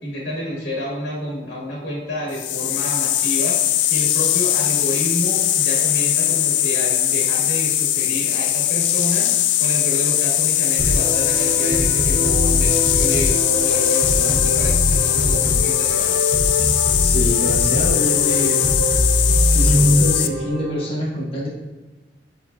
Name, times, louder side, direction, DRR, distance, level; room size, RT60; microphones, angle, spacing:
voice 1, 0.0-3.6 3.9-9.3 9.6-16.2, equal, 65° left, -5 dB, 2.0 m, -29 dB
sound 1, 2.3-20.3, left 12 dB, 85° left, 0.4 m, -20 dB
sound 2, 10.8-20.9, equal, 65° right, 1.2 m, -22 dB
voice 2, 17.0-18.6 19.5-21.5, equal, 30° left, -5 dB, 1.2 m, -25 dB
9.3 x 4.1 x 2.7 m, 1.2 s
head